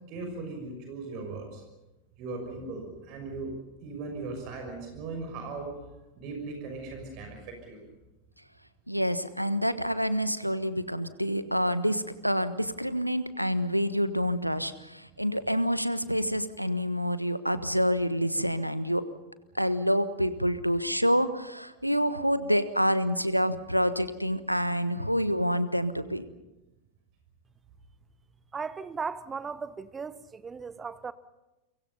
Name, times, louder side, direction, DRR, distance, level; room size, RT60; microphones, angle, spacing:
voice 1, 0.1-1.6 2.2-3.5 3.8-5.7 6.2-7.8, right 3 dB, 40° right, 6.2 m, -38 dB
voice 2, 8.9-19.0 19.5-26.2, equal, 90° right, 1.3 m, -27 dB
voice 3, 28.5-31.1, right 5 dB, 15° right, 1.0 m, -37 dB
30.0 x 24.5 x 5.6 m
figure-of-eight pair, 90°, 0 cm